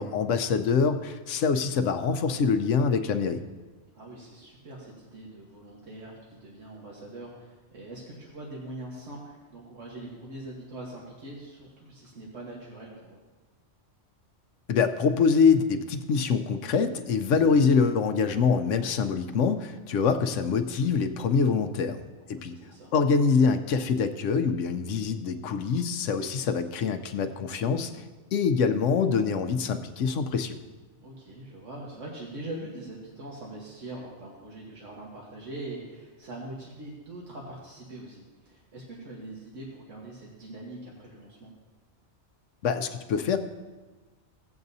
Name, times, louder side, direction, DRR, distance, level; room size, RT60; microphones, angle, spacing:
voice 1, 0.0-3.4 14.7-22.0 22.3-22.5 22.9-27.9 28.3-30.6 42.6-43.4, left 5 dB, 80° left, 8 dB, 1.0 m, -25 dB
voice 2, 3.9-13.2 22.2-22.9 31.0-41.5, right 1 dB, 80° right, -3 dB, 1.7 m, -42 dB
16.5 x 7.9 x 2.7 m, 1.3 s
omnidirectional pair, 1.3 m